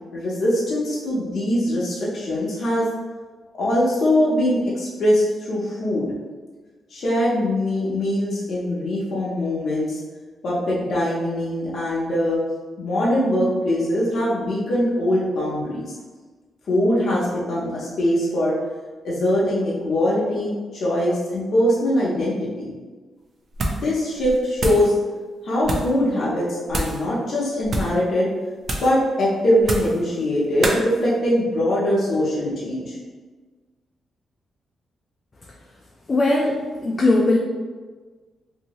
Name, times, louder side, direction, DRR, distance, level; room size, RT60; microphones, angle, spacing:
voice 1, 0.1-2.9 3.5-6.1 6.9-10.0 10.4-12.4 12.8-15.9 16.7-18.5 19.0-22.7 23.6-24.9 25.4-28.3 28.8-33.0, left 1 dB, 55° left, -6 dB, 0.7 m, -22 dB
sound 1, 23.5-23.9 24.2-24.9 25.6-26.0 26.7-27.0 27.6-28.0 28.6-29.0 29.6-30.0 30.6-30.8, right 2 dB, 50° right, 0.5 m, -26 dB
voice 2, 36.1-37.4, left 2 dB, 30° left, -2 dB, 0.3 m, -19 dB
2.7 x 2.6 x 2.9 m, 1.4 s
cardioid pair, 120°, 0 cm